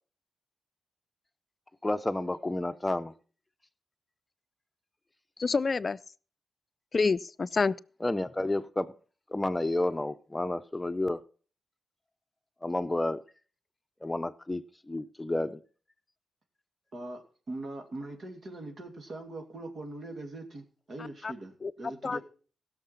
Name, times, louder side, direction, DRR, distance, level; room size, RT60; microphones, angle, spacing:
voice 1, 1.8-3.1 8.0-8.9 9.3-11.2 12.6-13.2 14.0-15.6, left 2 dB, 15° left, 0.8 m, -30 dB
voice 2, 5.4-6.0 6.9-7.7 21.2-21.3 21.6-21.7 22.0-22.2, left 4 dB, 45° left, 0.5 m, -27 dB
voice 3, 16.9-22.2, right 2 dB, 55° right, 2.8 m, -41 dB
16.0 x 6.6 x 5.8 m
cardioid pair, 65°, 0 cm